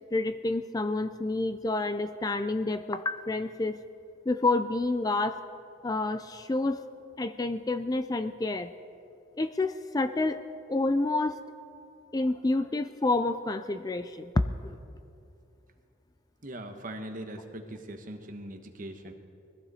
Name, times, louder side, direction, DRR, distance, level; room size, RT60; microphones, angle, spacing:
voice 1, 0.1-3.8 4.3-5.4 5.8-6.8 7.2-8.7 9.4-10.4 10.7-11.4 12.1-14.8, left 2 dB, 20° left, 10 dB, 0.3 m, -28 dB
voice 2, 16.4-19.1, right 1 dB, 40° right, 5 dB, 1.1 m, -41 dB
21.0 x 15.0 x 4.2 m, 2.7 s
head